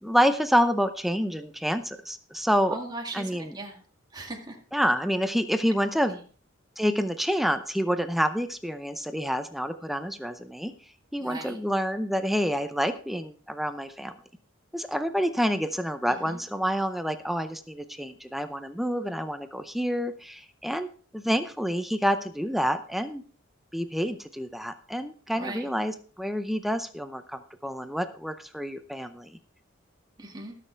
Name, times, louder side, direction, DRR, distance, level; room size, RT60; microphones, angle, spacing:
voice 1, 0.0-2.8 3.1-3.6 4.7-6.2 6.8-10.7 11.1-14.1 14.7-23.2 23.7-29.4, equal, ahead, 9 dB, 0.6 m, -28 dB
voice 2, 2.7-3.8 4.1-4.6 6.0-6.1 11.2-11.6 16.3-16.4 25.3-25.7 30.2-30.5, right 2 dB, 20° right, 1 dB, 2.1 m, -38 dB
20.0 x 6.7 x 3.3 m, 0.41 s
head